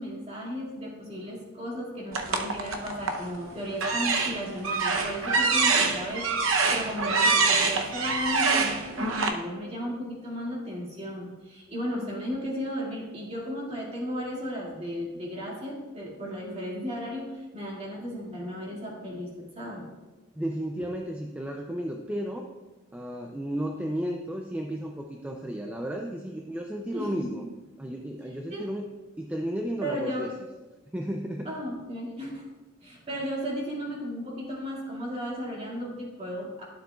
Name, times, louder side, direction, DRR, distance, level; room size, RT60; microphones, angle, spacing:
voice 1, 0.0-6.3 6.7-19.8 26.9-27.4 28.5-28.7 29.8-30.3 31.5-32.4 32.8-36.6, equal, 30° right, -4 dB, 2.1 m, -35 dB
sound 1, 2.1-3.3 3.7-9.3, right 4 dB, 80° right, 0.7 m, -25 dB
voice 2, 20.4-22.5 22.9-27.5 27.8-28.9 29.2-30.3 30.9-31.5 33.1-33.2, equal, 5° right, 2 dB, 0.4 m, -33 dB
12.0 x 7.2 x 2.3 m, 1.2 s
head